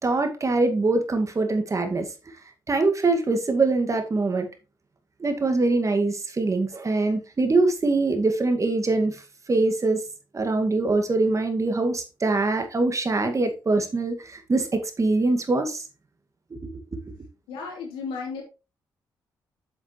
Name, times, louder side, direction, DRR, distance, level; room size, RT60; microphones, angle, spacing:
voice 1, 0.0-2.3 2.7-4.5 5.2-9.2 9.5-10.0 10.3-15.8 16.5-16.8, right 3 dB, 35° right, 2.0 m, -23 dB
voice 2, 17.5-18.4, left 5 dB, 90° left, 3.1 m, -33 dB
7.7 x 7.4 x 3.1 m
supercardioid pair, 55°, 9 cm